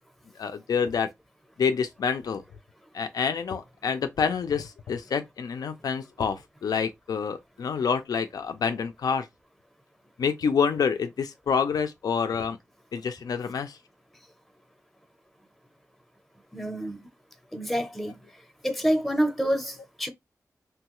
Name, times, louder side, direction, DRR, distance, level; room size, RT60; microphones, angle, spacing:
voice 1, 0.4-1.1 1.6-2.4 2.9-9.3 10.2-12.6 12.9-13.8, left 6 dB, 85° left, 0.3 m, -27 dB
voice 2, 16.5-17.1 17.5-18.2 18.6-20.1, equal, ahead, 0.5 m, -27 dB
3.0 x 2.2 x 2.9 m
wide cardioid pair, 125°, 6 cm